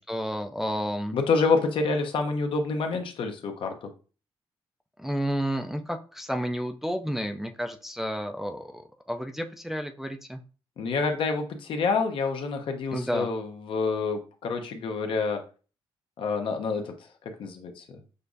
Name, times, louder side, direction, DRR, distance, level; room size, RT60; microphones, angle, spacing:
voice 1, 0.0-1.2 5.0-8.8 9.1-10.4 12.9-13.3, equal, 5° right, 4 dB, 0.3 m, -31 dB
voice 2, 1.1-3.9 10.8-15.4 16.2-16.9 17.4-17.8, left 4 dB, 65° left, 5 dB, 0.8 m, -27 dB
6.5 x 2.4 x 2.6 m, 0.36 s
cardioid pair, 120°, 9 cm